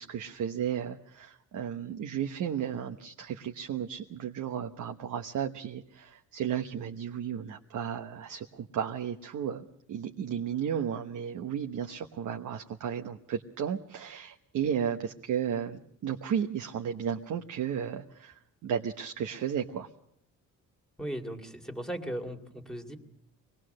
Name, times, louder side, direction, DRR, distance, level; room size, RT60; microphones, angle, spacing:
voice 1, 0.0-19.9, right 8 dB, 60° right, 5 dB, 1.1 m, -34 dB
voice 2, 21.0-23.0, right 1 dB, ahead, 4 dB, 2.1 m, -37 dB
24.5 x 19.5 x 6.5 m, 0.74 s
cardioid pair, 135°, 33 cm